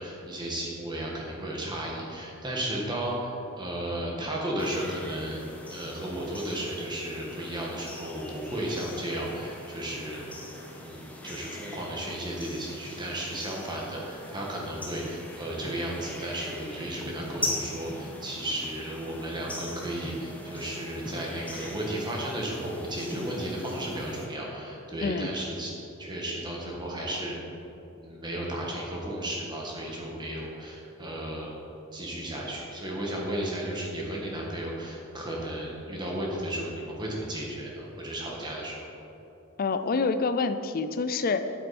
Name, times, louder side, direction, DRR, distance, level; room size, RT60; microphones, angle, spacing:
voice 1, 0.0-5.4 5.7-10.4 10.7-25.7 26.0-27.3 28.0-31.6 31.9-38.9, right 1 dB, 20° right, -3 dB, 1.6 m, -34 dB
sound 1, 4.6-24.2, left 1 dB, 5° left, 1.0 m, -41 dB
voice 2, 39.6-41.5, left 4 dB, 45° left, 10 dB, 0.4 m, -27 dB
8.8 x 8.3 x 4.3 m, 3.0 s
head